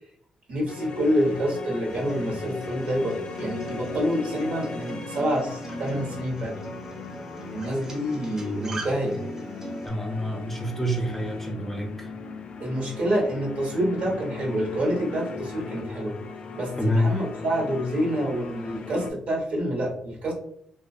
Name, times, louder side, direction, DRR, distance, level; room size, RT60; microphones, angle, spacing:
voice 1, 0.5-6.6 7.5-9.2 12.6-16.2 16.5-20.3, equal, 70° right, -1 dB, 1.0 m, -27 dB
sound 1, 0.7-19.1, left 4 dB, 55° left, 0.3 m, -38 dB
Acoustic guitar, 1.9-9.9, right 1 dB, 25° right, 0.6 m, -39 dB
voice 2, 9.8-12.1 16.8-17.1, equal, 15° left, 2 dB, 0.6 m, -27 dB
2.4 x 2.2 x 2.5 m, 0.68 s
cardioid pair, 70°, 2 cm